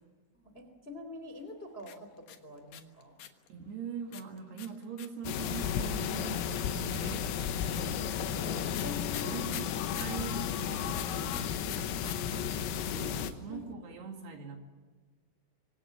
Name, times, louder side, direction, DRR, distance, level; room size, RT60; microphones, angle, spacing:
voice 1, 0.3-3.2 8.8-9.5 13.5-13.7, left 3 dB, 15° left, 7 dB, 2.4 m, -45 dB
sound 1, 1.8-3.5 4.1-5.7 6.5-10.2 10.9-12.2 12.4-12.5 12.7-13.2, left 10 dB, 65° left, 2.5 m, -44 dB
voice 2, 3.5-7.3 7.6-8.8 9.2-14.6, right 6 dB, 60° right, 3 dB, 3.9 m, -43 dB
sound 2, 5.2-13.3, left 8 dB, 85° left, 4.1 m, -33 dB
26.0 x 25.5 x 7.3 m, 1.5 s
omnidirectional pair, 5.9 m